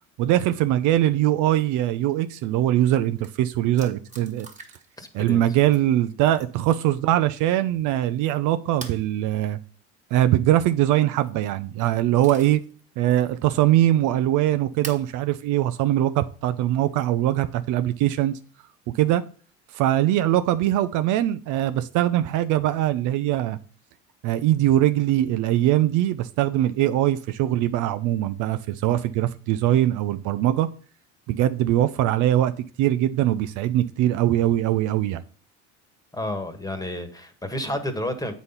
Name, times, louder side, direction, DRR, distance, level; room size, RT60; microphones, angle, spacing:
voice 1, 0.2-4.5 5.1-9.6 10.1-12.6 13.0-18.4 18.9-19.2 19.7-23.6 24.2-30.7 31.3-35.2, right 13 dB, 60° right, 0.6 m, -22 dB
sound 1, 2.8-2.9 3.2-3.3 3.8-5.0 5.3-5.9 6.4-6.7 8.8-9.1 11.0-11.4 11.8-12.7 13.2-13.3 14.8-15.1 16.2-16.3 18.4-18.8, right 4 dB, 20° right, 1.6 m, -43 dB
voice 2, 5.0-5.4 36.1-38.3, left 1 dB, 10° left, 1.5 m, -30 dB
8.0 x 4.2 x 5.6 m
hypercardioid pair, 80°, 35 cm